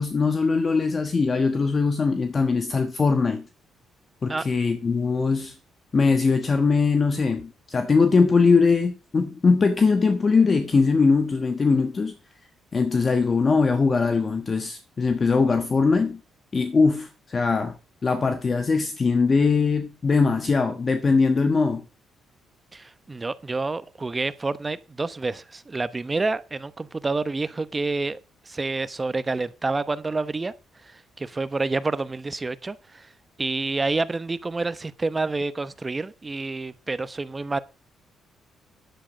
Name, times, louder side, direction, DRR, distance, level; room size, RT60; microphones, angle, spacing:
voice 1, 0.0-3.5 4.2-5.5 5.9-12.1 12.7-16.2 16.5-17.7 18.0-21.8, left 4 dB, 35° left, 1.3 m, -21 dB
voice 2, 22.7-28.2 28.4-30.5 30.8-33.1 33.4-37.6, right 3 dB, 25° right, 0.9 m, -28 dB
10.5 x 8.6 x 5.1 m
cardioid pair, 90°, 0 cm